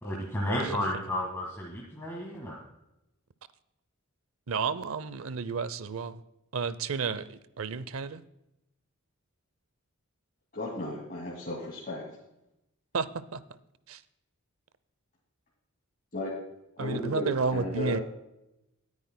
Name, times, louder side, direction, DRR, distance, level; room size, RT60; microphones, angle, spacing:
voice 1, 0.0-2.6, left 1 dB, 10° left, -2 dB, 1.6 m, -32 dB
voice 2, 4.5-6.2 6.5-8.2 12.9-13.4 13.9-14.0 16.8-18.0, right 5 dB, 75° right, 16 dB, 0.6 m, -31 dB
voice 3, 10.5-12.0 16.1-16.4 16.8-18.0, left 1 dB, 40° left, -4 dB, 2.3 m, -34 dB
21.0 x 9.6 x 2.2 m, 0.88 s
head